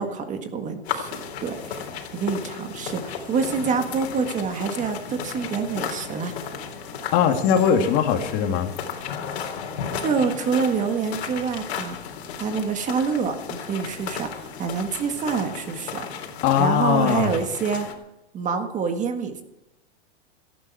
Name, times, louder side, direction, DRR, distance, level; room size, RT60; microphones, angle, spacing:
voice 1, 0.0-6.3 10.0-12.0 12.4-13.4 13.6-16.1 16.6-17.9 18.3-19.4, right 5 dB, 25° right, 6 dB, 1.7 m, -26 dB
sound 1, 0.8-17.9, left 7 dB, 75° left, 3.7 m, -34 dB
voice 2, 7.1-8.7 16.4-17.3, left 8 dB, 40° left, 5 dB, 2.5 m, -20 dB
17.5 x 14.0 x 4.8 m, 0.92 s
hypercardioid pair, 140°, 32 cm